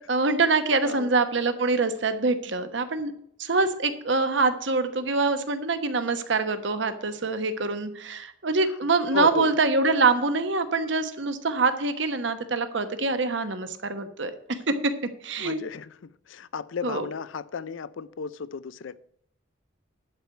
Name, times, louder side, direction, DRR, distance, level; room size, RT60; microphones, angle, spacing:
voice 1, 0.1-3.1 3.4-14.9 15.2-15.6 16.8-17.1, right 3 dB, 70° right, 1.1 m, -25 dB
voice 2, 9.1-9.5 15.4-19.0, left 5 dB, 85° left, 0.5 m, -34 dB
11.5 x 4.7 x 8.1 m
head